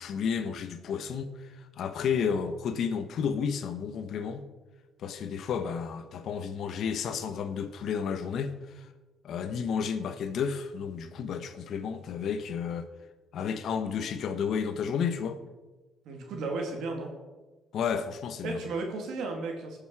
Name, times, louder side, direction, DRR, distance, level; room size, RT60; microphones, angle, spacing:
voice 1, 0.0-4.4 5.0-8.9 9.2-12.9 13.3-15.4 17.7-18.6, left 6 dB, 70° left, 1.1 m, -32 dB
voice 2, 16.0-17.1 18.4-19.8, right 3 dB, 85° right, 2.7 m, -34 dB
20.0 x 7.1 x 4.8 m
cardioid pair, 90°, 0 cm